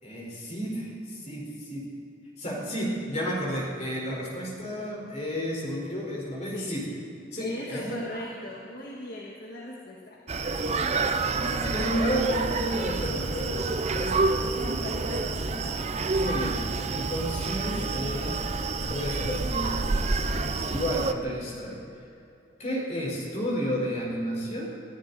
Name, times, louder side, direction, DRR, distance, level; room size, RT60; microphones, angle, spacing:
voice 1, 0.0-1.8 2.4-6.8 7.3-8.2 11.3-14.3 16.2-16.6 16.9-18.4 18.9-20.3 20.7-21.8 22.6-24.7, equal, 40° left, -3 dB, 4.4 m, -32 dB
voice 2, 7.4-10.2 14.5-15.9 20.3-20.8, left 1 dB, 55° left, -2 dB, 1.6 m, -39 dB
Screaming, 10.3-21.1, right 3 dB, 40° right, 0.7 m, -28 dB
21.5 x 14.0 x 4.1 m, 2.6 s
head